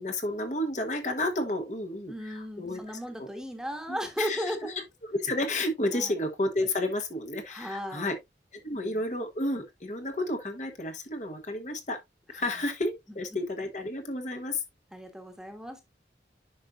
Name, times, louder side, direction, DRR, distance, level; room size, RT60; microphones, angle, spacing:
voice 1, 0.0-3.3 3.9-4.5 5.1-8.2 8.5-12.0 12.3-14.6, left 1 dB, 45° left, 1.3 m, -31 dB
voice 2, 2.1-4.8 5.9-6.1 7.5-8.1 8.7-9.0 12.3-12.4 14.9-15.8, equal, 5° right, 1.3 m, -36 dB
10.0 x 5.3 x 2.5 m
head